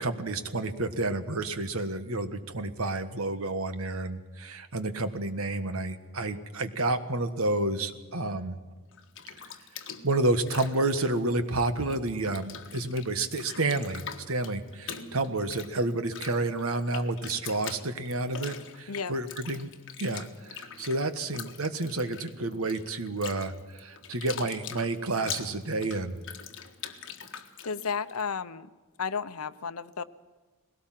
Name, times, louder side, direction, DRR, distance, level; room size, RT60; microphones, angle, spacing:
voice 1, 0.0-8.6 10.0-19.7 20.0-26.1, right 2 dB, 70° right, 10 dB, 1.5 m, -30 dB
Bathtub (filling or washing), 8.9-12.0 12.2-28.2, left 7 dB, 55° left, 1.6 m, -43 dB
voice 2, 27.6-28.7 29.0-30.0, left 5 dB, 85° left, 13 dB, 0.8 m, -33 dB
20.0 x 17.5 x 7.6 m, 1.3 s
head